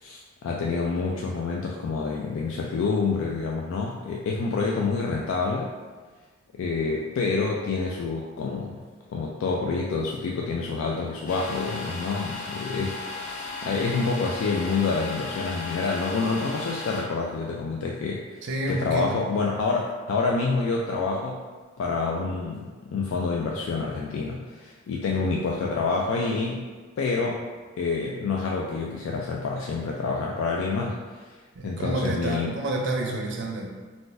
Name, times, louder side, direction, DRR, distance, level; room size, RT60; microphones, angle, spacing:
voice 1, 0.0-5.7 6.5-8.8 9.1-21.4 21.8-26.7 27.0-27.4 27.8-31.4 31.6-32.5, left 4 dB, 70° left, -2 dB, 0.3 m, -28 dB
Domestic sounds home sounds, 11.3-17.0, left 3 dB, 40° left, 0.7 m, -36 dB
voice 2, 18.4-19.3 31.5-33.7, right 1 dB, 60° right, 0 dB, 0.5 m, -29 dB
2.5 x 2.4 x 3.8 m, 1.4 s
head